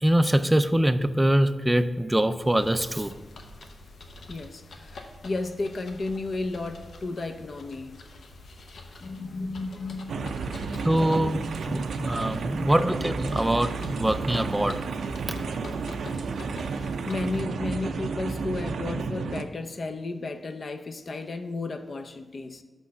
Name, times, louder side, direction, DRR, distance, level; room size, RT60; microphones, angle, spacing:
voice 1, 0.0-3.1 10.8-14.8, right 1 dB, 10° right, 11 dB, 0.4 m, -24 dB
sound 1, 2.4-17.4, left 1 dB, 80° left, 0.8 m, -44 dB
voice 2, 4.3-8.1 9.0-10.7 16.6-22.6, left 3 dB, 50° left, 7 dB, 0.5 m, -34 dB
sound 2, 10.1-19.4, right 4 dB, 90° right, 0.4 m, -32 dB
6.2 x 5.2 x 5.7 m, 1.2 s
wide cardioid pair, 110°, 0 cm